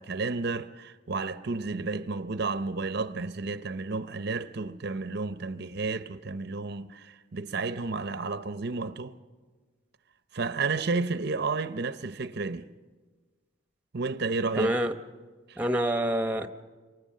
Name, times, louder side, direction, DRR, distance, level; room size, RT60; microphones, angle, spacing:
voice 1, 0.0-9.1 10.3-12.7 13.9-14.7 15.5-15.6, right 3 dB, 50° right, 0.7 m, -31 dB
voice 2, 14.6-14.9 15.6-16.5, equal, 5° right, 0.8 m, -26 dB
27.0 x 24.0 x 7.5 m
head